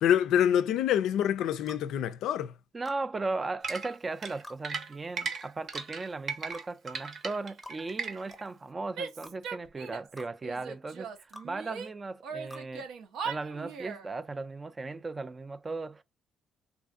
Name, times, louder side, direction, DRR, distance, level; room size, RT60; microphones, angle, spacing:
voice 1, 0.0-2.5, left 10 dB, 85° left, 0.3 m, -26 dB
sound 1, 1.7-1.9 2.9-3.0 4.4-4.6 5.7-5.9 6.5-6.7 7.6-7.8 8.3-8.5 9.2-9.4 10.2-10.3 11.3-11.5 12.5-12.7, left 1 dB, 5° left, 0.7 m, -47 dB
voice 2, 2.7-12.9 13.2-16.0, right 3 dB, 30° right, 0.3 m, -37 dB
sound 2, 3.6-8.4, right 5 dB, 55° right, 0.7 m, -37 dB
Female speech woman speaking / Yell, 8.9-10.1 10.4-11.9 12.2-14.1, right 6 dB, 85° right, 0.6 m, -39 dB
3.4 x 2.5 x 2.4 m
cardioid pair, 90°, 0 cm